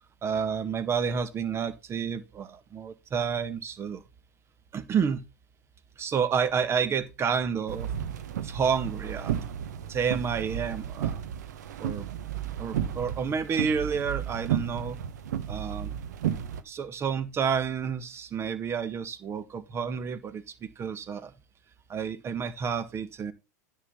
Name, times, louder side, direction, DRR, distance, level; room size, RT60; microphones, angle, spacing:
voice 1, 0.2-4.0 4.7-5.2 6.0-7.9 8.4-9.3 9.9-11.2 11.8-12.1 12.6-15.0 15.5-16.0 16.6-21.3 21.9-23.3, right 6 dB, 25° right, 1.4 m, -30 dB
sound 1, 7.7-16.6, right 10 dB, 75° right, 1.1 m, -33 dB
9.8 x 3.9 x 7.1 m
hypercardioid pair, 105°, 10 cm